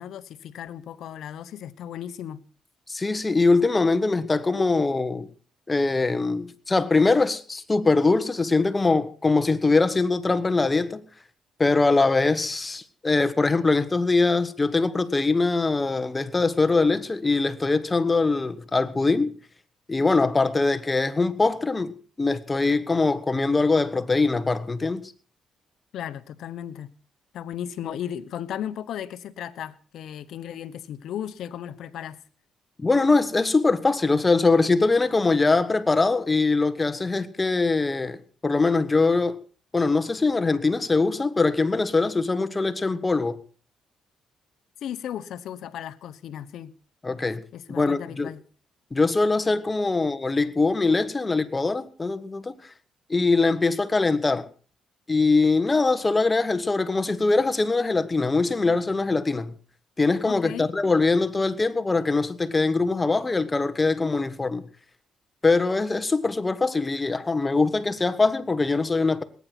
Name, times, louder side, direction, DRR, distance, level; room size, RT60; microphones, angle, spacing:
voice 1, 0.0-2.4 25.9-26.9 27.3-32.2 44.8-46.7 47.5-48.4 60.3-60.7, left 10 dB, 75° left, 1.0 m, -35 dB
voice 2, 2.9-5.3 5.7-11.0 11.6-19.3 19.9-25.1 32.8-39.4 39.7-43.4 47.0-47.4 47.7-48.3 48.9-52.5 53.1-54.5 55.1-59.5 60.0-64.6 65.4-69.2, left 3 dB, 20° left, 1.4 m, -22 dB
19.0 x 9.7 x 6.0 m
cardioid pair, 90°, 0 cm